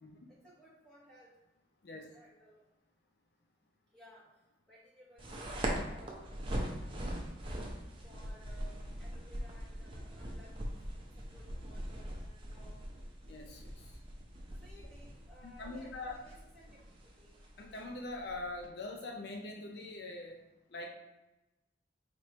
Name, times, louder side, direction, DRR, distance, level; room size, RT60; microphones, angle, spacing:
voice 1, 0.3-1.4 2.1-2.7 3.9-6.3 8.0-12.8 14.5-16.8 17.2-17.4, equal, 5° left, -9 dB, 0.9 m, -60 dB
sound 1, 5.2-18.7, equal, 25° right, 0.6 m, -42 dB
voice 2, 13.3-14.0 15.4-16.2 17.6-20.4 20.7-20.9, left 2 dB, 55° left, 1 dB, 0.5 m, -43 dB
4.4 x 3.1 x 2.9 m, 1.0 s
head